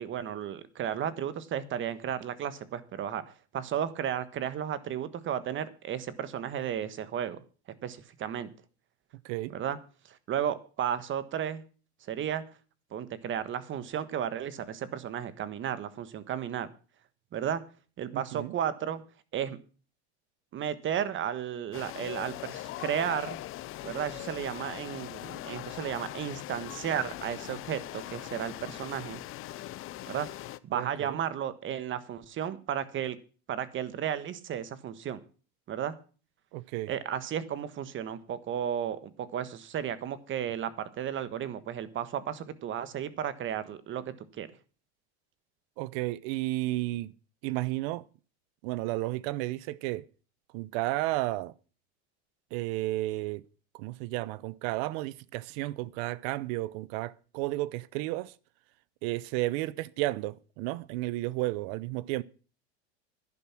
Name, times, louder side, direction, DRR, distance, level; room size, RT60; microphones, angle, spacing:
voice 1, 0.0-3.2 3.5-7.4 7.8-8.5 9.5-9.8 10.1-11.6 12.1-12.4 12.9-16.7 17.3-17.6 18.0-19.0 19.3-19.6 20.5-23.4 23.8-29.2 30.1-30.3 30.6-33.2 33.5-35.2 35.7-35.9 36.9-44.5, right 9 dB, 35° right, 1.4 m, -33 dB
voice 2, 18.1-18.5 30.7-31.2 36.5-36.9 45.8-47.1 47.4-48.0 48.6-50.1 50.5-51.5 52.5-53.4 53.7-58.3 59.0-62.2, right 18 dB, 60° right, 0.8 m, -32 dB
sound 1, 21.7-30.6, left 15 dB, 40° left, 0.7 m, -41 dB
11.0 x 11.0 x 6.0 m
supercardioid pair, 120°, 34 cm